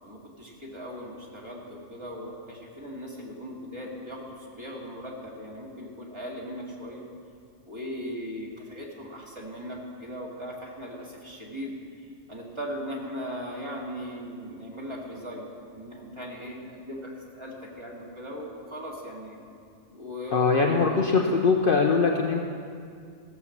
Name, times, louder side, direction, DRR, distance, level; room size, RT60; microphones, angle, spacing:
voice 1, 0.0-7.0 7.6-11.7 12.3-19.4 19.9-21.0, equal, 20° right, -3 dB, 2.1 m, -38 dB
voice 2, 20.3-22.4, left 4 dB, 50° left, 1 dB, 0.8 m, -22 dB
15.5 x 6.9 x 7.2 m, 2.3 s
omnidirectional pair, 1.4 m